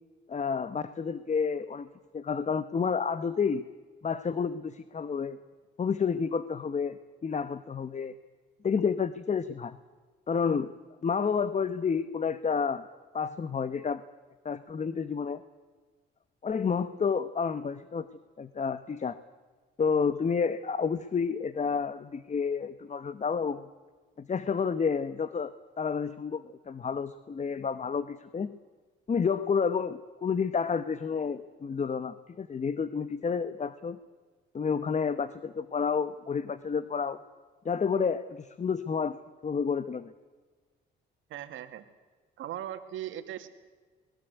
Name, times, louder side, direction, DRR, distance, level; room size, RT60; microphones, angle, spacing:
voice 1, 0.3-1.9 2.1-3.6 4.0-5.4 5.8-8.1 8.6-9.8 10.3-10.7 11.0-12.9 13.1-14.0 14.4-15.4 16.4-18.1 18.4-19.2 19.8-23.7 24.2-25.5 25.8-28.5 29.1-34.0 34.5-37.2 37.6-39.2 39.4-40.1, left 6 dB, 35° left, 13 dB, 1.2 m, -30 dB
voice 2, 41.3-41.8 42.4-43.5, right 11 dB, 80° right, 8 dB, 2.4 m, -38 dB
27.0 x 21.0 x 8.3 m, 1.4 s
cardioid pair, 90°, 20 cm